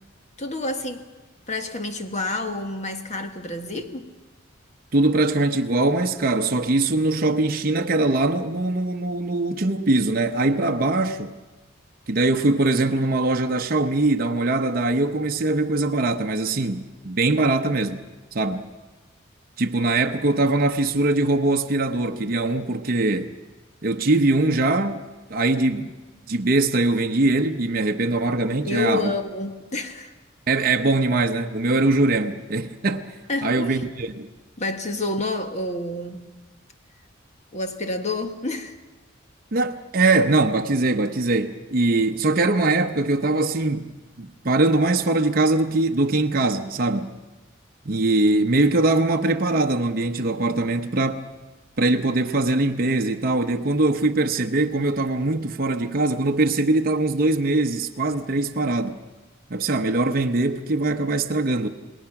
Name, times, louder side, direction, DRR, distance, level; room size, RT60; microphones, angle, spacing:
voice 1, 0.4-1.1 1.5-4.1 28.7-30.1 33.3-33.8 34.6-36.2 37.5-38.8, left 2 dB, 35° left, 1.4 m, -29 dB
voice 2, 4.9-11.4 12.1-18.0 18.3-18.6 19.6-23.3 23.8-25.0 25.3-25.9 26.3-29.1 30.5-34.3 39.5-47.1 47.8-51.3 51.8-59.0 59.5-61.7, right 2 dB, 50° right, 0.8 m, -22 dB
28.0 x 20.0 x 5.9 m
head